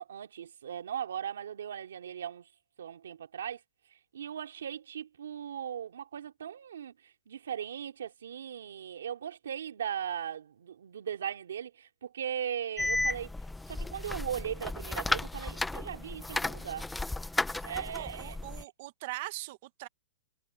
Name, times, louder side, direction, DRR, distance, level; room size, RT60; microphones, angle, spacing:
voice 1, 0.0-2.5 2.8-3.6 4.1-13.3 13.7-16.9 17.6-18.4, right 9 dB, 80° right, 2.9 m, -38 dB
sound 1, 12.8-18.6, left 2 dB, 5° left, 0.7 m, -34 dB
voice 2, 17.9-19.9, right 19 dB, 40° right, 1.1 m, -41 dB
hypercardioid pair, 165°, 0 cm